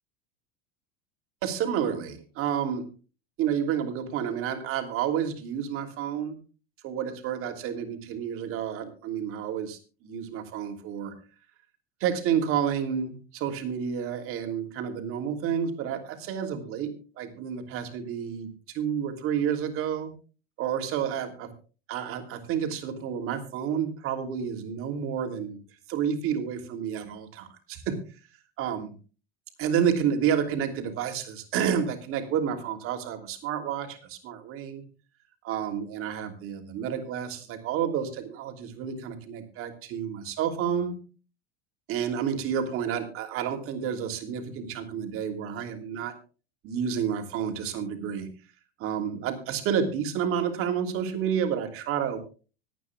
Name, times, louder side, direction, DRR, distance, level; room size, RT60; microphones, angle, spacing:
voice 1, 1.4-2.9 3.4-6.4 6.8-11.1 12.0-20.1 20.6-21.5 21.9-25.6 25.9-28.0 28.6-28.9 29.6-34.8 35.4-40.9 41.9-46.1 46.6-48.3 48.8-52.2, right 8 dB, 50° right, 5 dB, 2.9 m, -30 dB
26.0 x 9.1 x 2.4 m, 0.35 s
supercardioid pair, 125°, 30 cm